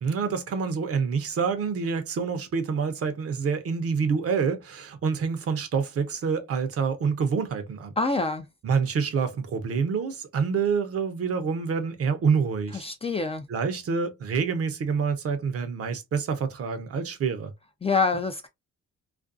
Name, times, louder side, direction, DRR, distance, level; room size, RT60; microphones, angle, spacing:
voice 1, 0.0-7.9 8.6-12.9 13.5-17.5, right 5 dB, 50° right, 0.7 m, -27 dB
voice 2, 8.0-8.5 12.7-13.4 17.8-18.5, left 4 dB, 20° left, 0.4 m, -26 dB
2.5 x 2.2 x 2.4 m
cardioid pair, 90°, 30 cm